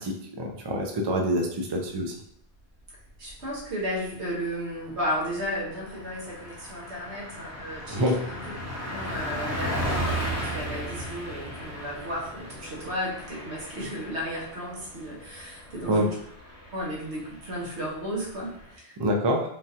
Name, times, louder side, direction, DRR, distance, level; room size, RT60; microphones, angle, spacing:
voice 1, 0.0-2.1 7.9-8.2 15.9-16.1 19.0-19.5, equal, 45° right, 1 dB, 0.3 m, -26 dB
Car passing by, 3.1-3.7 4.0-4.2 4.5-18.7, equal, 20° left, 0.5 m, -36 dB
voice 2, 3.2-8.4 8.9-16.1 16.7-18.9, equal, 85° right, -4 dB, 1.4 m, -34 dB
3.7 x 2.4 x 2.7 m, 0.69 s
omnidirectional pair, 1.1 m